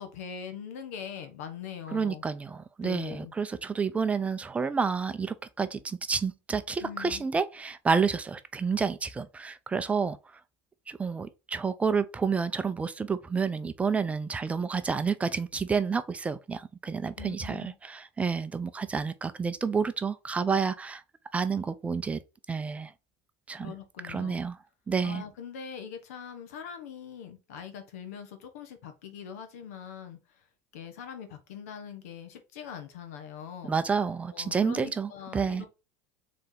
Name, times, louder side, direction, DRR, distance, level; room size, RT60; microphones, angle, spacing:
voice 1, 0.0-2.2 2.8-3.3 6.8-7.3 17.2-17.8 23.6-24.4 25.0-30.4 30.7-33.8 34.3-35.7, left 7 dB, 85° left, 1.1 m, -42 dB
voice 2, 1.9-10.2 10.9-21.0 21.3-22.2 22.5-22.9 23.5-23.7 24.0-24.6 24.9-25.2 33.6-35.7, right 5 dB, 15° right, 0.4 m, -29 dB
3.9 x 3.3 x 3.8 m
supercardioid pair, 110°, 8 cm